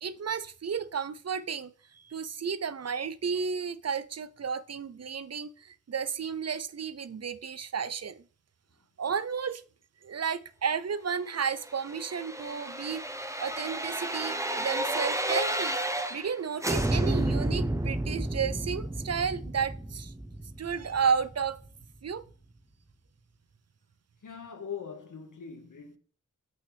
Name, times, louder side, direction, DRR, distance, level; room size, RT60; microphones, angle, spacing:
voice 1, 0.0-8.2 9.0-9.6 10.0-13.0 13.4-15.8 16.1-20.1 20.6-21.6 22.0-22.2, right 6 dB, 55° right, 0.6 m, -32 dB
sound 1, 11.6-16.3 16.6-21.5 21.8-21.9, right 1 dB, 10° right, 0.9 m, -31 dB
voice 2, 24.2-26.0, left 7 dB, 80° left, 1.7 m, -41 dB
8.5 x 6.0 x 3.4 m
wide cardioid pair, 105°, 31 cm